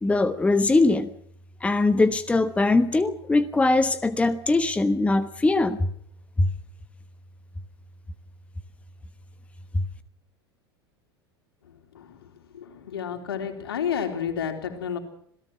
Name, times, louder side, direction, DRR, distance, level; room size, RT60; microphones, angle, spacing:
voice 1, 0.0-1.1 1.6-5.9 6.4-6.5 9.7-9.8, left 2 dB, 10° left, 12 dB, 1.1 m, -21 dB
voice 2, 12.5-15.0, left 8 dB, 70° left, 5 dB, 3.8 m, -30 dB
27.0 x 17.5 x 6.1 m, 0.65 s
figure-of-eight pair, 85°, 13 cm